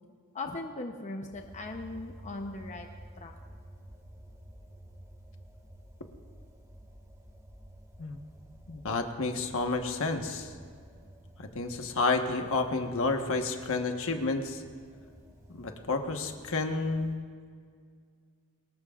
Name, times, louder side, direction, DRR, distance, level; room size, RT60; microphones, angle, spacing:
voice 1, 0.3-2.9 3.2-3.3, left 2 dB, 35° left, 3 dB, 0.8 m, -38 dB
sound 1, 1.3-17.1, right 1 dB, 15° right, 1.9 m, -52 dB
voice 2, 8.7-10.5 11.4-14.6 15.5-17.2, left 3 dB, 65° left, 4 dB, 1.3 m, -30 dB
23.5 x 20.0 x 2.5 m, 2.1 s
head